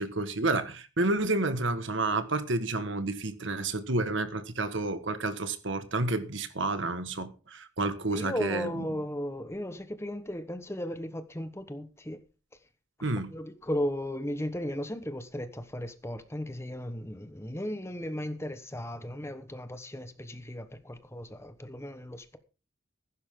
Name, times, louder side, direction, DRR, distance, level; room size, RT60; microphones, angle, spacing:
voice 1, 0.0-8.8 13.0-13.3, right 2 dB, 60° right, 1.6 m, -30 dB
voice 2, 8.1-12.2 13.3-22.4, equal, 10° left, 1.2 m, -36 dB
15.5 x 11.5 x 3.8 m
head